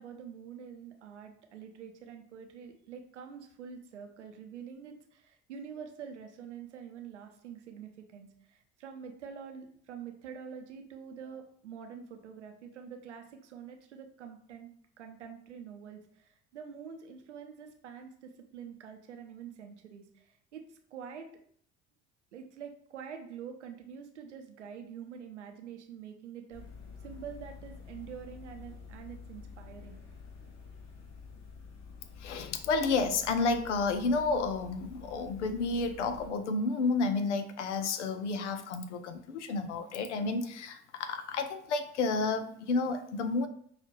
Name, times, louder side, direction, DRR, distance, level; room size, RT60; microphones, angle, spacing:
voice 1, 0.0-14.7 15.0-21.3 22.3-26.6 27.0-30.0, right 7 dB, 85° right, 5 dB, 0.6 m, -46 dB
sound 1, 26.5-36.3, left 5 dB, 50° left, 1.0 m, -49 dB
voice 2, 32.2-43.5, left 3 dB, 85° left, 10 dB, 0.5 m, -31 dB
6.1 x 2.4 x 3.0 m, 0.62 s
figure-of-eight pair, 55°, 34 cm